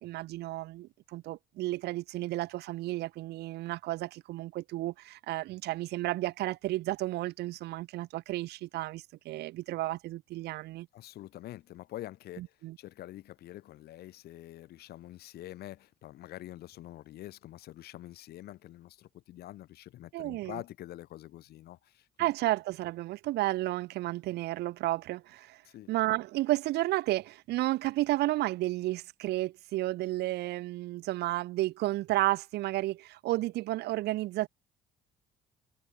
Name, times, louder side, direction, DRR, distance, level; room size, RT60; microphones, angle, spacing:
voice 1, 0.0-10.9 12.4-12.8 20.1-20.6 22.2-25.6 25.9-34.5, right 17 dB, 80° right, 1.0 m, -32 dB
voice 2, 10.9-22.3 25.6-25.9, left 14 dB, 70° left, 1.7 m, -46 dB
cardioid pair, 110°, 17 cm